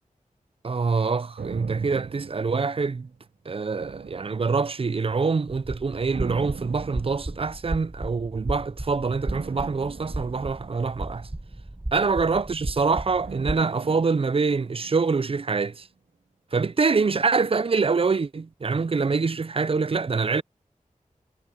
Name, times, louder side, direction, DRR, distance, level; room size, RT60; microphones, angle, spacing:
voice 1, 0.6-3.1 3.5-11.3 11.9-15.9 16.5-20.4, right 4 dB, 40° right, 0.4 m, -25 dB
sound 1, 1.4-3.3 3.8-5.0 6.1-7.8 9.2-11.6 13.2-15.4 15.7-15.8, right 5 dB, 80° right, 0.9 m, -41 dB
sound 2, 5.6-13.6, right 1 dB, 20° right, 1.4 m, -35 dB
cardioid pair, 45°, 14 cm